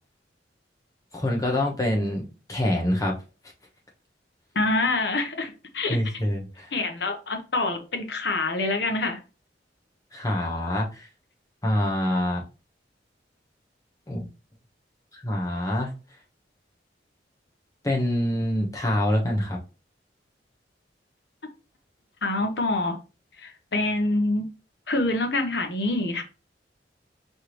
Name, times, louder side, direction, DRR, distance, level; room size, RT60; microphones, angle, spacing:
voice 1, 1.1-3.2 5.9-6.7 10.1-11.0 11.6-12.4 14.1-14.3 15.2-15.9 17.8-19.6, left 1 dB, 20° left, 1.0 m, -25 dB
voice 2, 4.5-6.0 6.7-9.2 22.2-23.0 23.4-24.4 24.9-26.2, left 2 dB, 65° left, 0.9 m, -26 dB
4.6 x 3.3 x 3.0 m
head